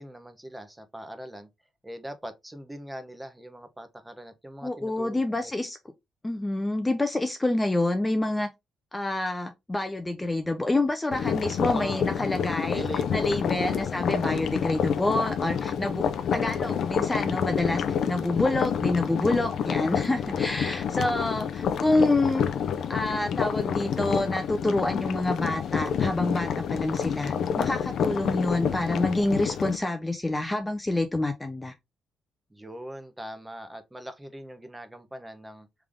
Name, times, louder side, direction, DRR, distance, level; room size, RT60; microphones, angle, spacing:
voice 1, 0.0-1.5 1.8-5.5 11.6-12.1 12.7-13.9 32.5-35.7, equal, 10° right, 0.9 m, -41 dB
voice 2, 4.6-5.8 6.2-8.5 8.9-12.9 13.1-16.1 16.3-22.5 22.9-31.7, left 2 dB, 15° left, 0.6 m, -27 dB
sound 1, 11.1-29.8, left 7 dB, 65° left, 0.5 m, -28 dB
3.5 x 3.4 x 3.6 m
cardioid pair, 90°, 0 cm